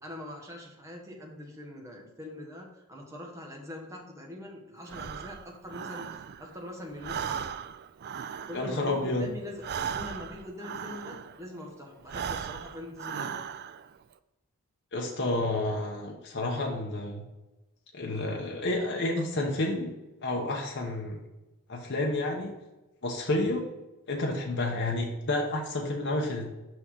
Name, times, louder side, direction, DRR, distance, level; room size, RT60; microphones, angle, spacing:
voice 1, 0.0-7.5 8.5-13.4, left 1 dB, 15° right, -1 dB, 1.4 m, -43 dB
Breathing, 4.9-6.6 6.9-11.5 12.0-13.9, right 7 dB, 45° right, 0.3 m, -37 dB
voice 2, 8.5-9.3 14.9-17.2 17.9-19.9 20.2-21.2 21.7-22.5 23.0-23.7 24.1-26.5, left 2 dB, 50° left, 0 dB, 1.1 m, -30 dB
6.2 x 5.7 x 4.7 m, 1.0 s
head